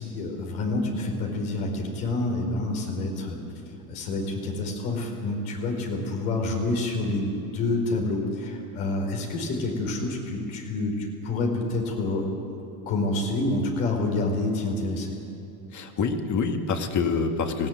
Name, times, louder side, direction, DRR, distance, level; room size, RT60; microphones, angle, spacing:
voice 1, 0.0-3.4 3.9-12.2 12.9-15.2, left 2 dB, 80° left, 1 dB, 4.7 m, -28 dB
voice 2, 15.7-17.7, left 5 dB, 40° left, 5 dB, 2.3 m, -26 dB
19.0 x 15.5 x 9.4 m, 2.7 s
supercardioid pair, 95°, 42 cm